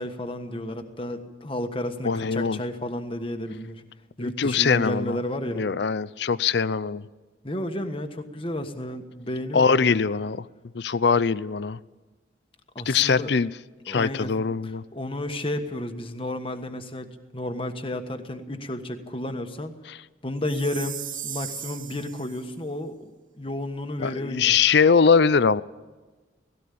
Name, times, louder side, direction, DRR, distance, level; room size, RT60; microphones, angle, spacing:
voice 1, 0.0-3.8 4.2-5.6 7.4-10.0 12.7-13.3 13.9-14.3 14.6-19.7 20.2-23.1 23.4-24.6, left 1 dB, 30° left, 7 dB, 1.4 m, -32 dB
voice 2, 2.0-2.6 4.2-5.2 5.5-7.0 9.5-10.5 10.7-11.8 12.9-13.5 13.9-14.8 19.9-20.0 24.0-25.6, left 5 dB, 65° left, 18 dB, 0.5 m, -22 dB
Chime, 20.4-22.4, right 9 dB, 45° right, 1.0 m, -37 dB
18.0 x 17.0 x 8.5 m, 1.3 s
head